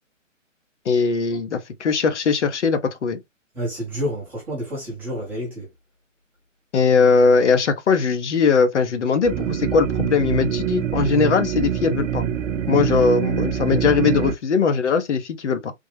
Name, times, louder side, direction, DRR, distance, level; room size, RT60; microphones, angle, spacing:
voice 1, 0.9-3.2 6.7-12.2 12.7-15.7, left 5 dB, 65° left, 0.8 m, -20 dB
voice 2, 3.5-5.7, equal, 5° right, 0.6 m, -29 dB
sound 1, 9.2-14.3, right 9 dB, 70° right, 0.6 m, -24 dB
3.4 x 2.1 x 3.3 m
hypercardioid pair, 150°, 39 cm